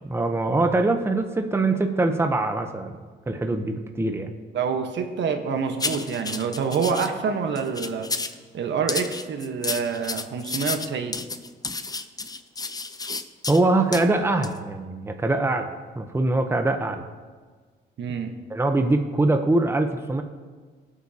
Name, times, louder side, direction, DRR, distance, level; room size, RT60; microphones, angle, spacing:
voice 1, 0.0-2.9 3.3-4.3 13.5-17.0 18.5-20.2, right 2 dB, 10° right, 5 dB, 0.8 m, -23 dB
voice 2, 4.5-8.1 8.5-11.1 18.0-18.3, right 6 dB, 65° right, 5 dB, 1.2 m, -27 dB
sound 1, 5.8-7.1 7.6-8.4 8.9-13.6 13.9-14.1 14.4-14.6, left 3 dB, 20° left, 0.6 m, -31 dB
18.0 x 8.3 x 2.9 m, 1.4 s
cardioid pair, 90°, 20 cm